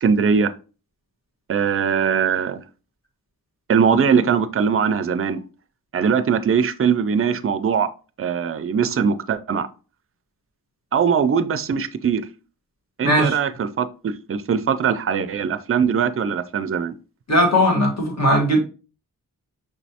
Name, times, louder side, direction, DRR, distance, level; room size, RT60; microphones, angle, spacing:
voice 1, 0.0-0.5 1.5-2.6 3.7-5.4 5.9-7.9 8.2-9.7 10.9-12.2 13.0-16.9, right 6 dB, 40° right, 0.4 m, -21 dB
voice 2, 13.0-13.4 17.3-18.6, equal, 50° left, 1.5 m, -18 dB
6.0 x 3.1 x 2.8 m
wide cardioid pair, 120°, 34 cm